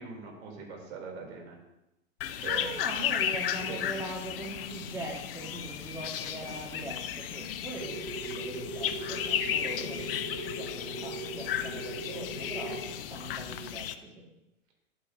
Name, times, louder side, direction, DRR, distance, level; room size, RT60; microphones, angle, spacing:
voice 1, 0.0-1.6 2.4-2.7 3.6-3.8 11.6-12.0, right 5 dB, 50° right, 0 dB, 3.3 m, -42 dB
sound 1, 2.2-13.9, left 10 dB, 45° left, 0.7 m, -34 dB
voice 2, 2.5-14.2, right 1 dB, 5° right, -2 dB, 1.8 m, -41 dB
sound 2, 7.8-12.8, right 3 dB, 85° right, 2.7 m, -40 dB
11.0 x 8.7 x 2.7 m, 0.91 s
figure-of-eight pair, 110°, 39 cm